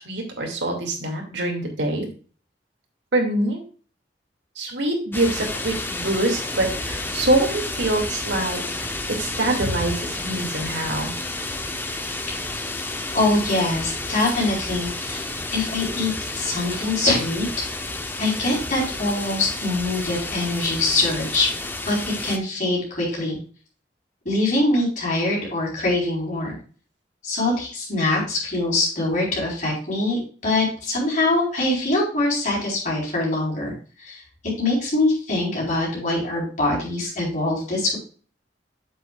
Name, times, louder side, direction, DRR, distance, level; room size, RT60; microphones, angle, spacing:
voice 1, 0.0-2.1 3.1-3.6 4.6-11.1, right 1 dB, 85° right, 2 dB, 2.5 m, -25 dB
sound 1, 5.1-22.4, left 2 dB, 10° left, 0.7 m, -31 dB
voice 2, 13.1-17.5 18.2-21.5 21.8-23.4 24.2-26.6 27.2-33.7 34.0-34.2 34.6-38.0, left 2 dB, 45° left, -3 dB, 4.5 m, -23 dB
8.2 x 7.9 x 2.5 m, 0.39 s
head